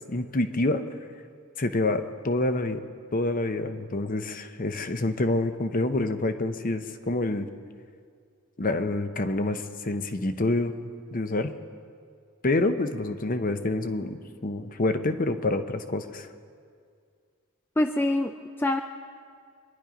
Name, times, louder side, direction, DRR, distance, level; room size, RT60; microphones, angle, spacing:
voice 1, 0.1-0.9 1.6-2.8 3.1-7.5 8.6-10.8 11.1-11.5 12.4-14.2 14.4-16.3, left 2 dB, 40° left, 8 dB, 0.9 m, -27 dB
voice 2, 17.8-18.8, left 1 dB, 10° left, 6 dB, 0.4 m, -25 dB
25.0 x 11.0 x 5.1 m, 2.2 s
head